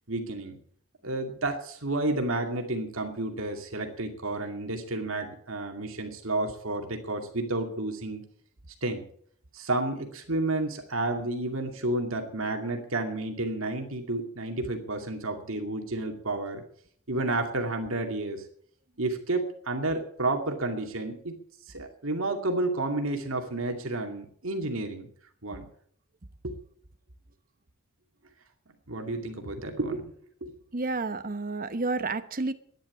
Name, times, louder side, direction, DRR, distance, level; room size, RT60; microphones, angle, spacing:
voice 1, 0.1-0.6 1.0-8.2 8.8-9.0 9.5-16.6 17.1-18.4 19.0-21.3 21.7-25.1 25.4-25.6 26.4-26.5 28.9-30.1 30.4-30.6, right 2 dB, 65° right, 3 dB, 2.4 m, -31 dB
voice 2, 30.7-32.5, right 3 dB, 40° right, 11 dB, 1.0 m, -30 dB
13.0 x 10.5 x 8.4 m, 0.63 s
head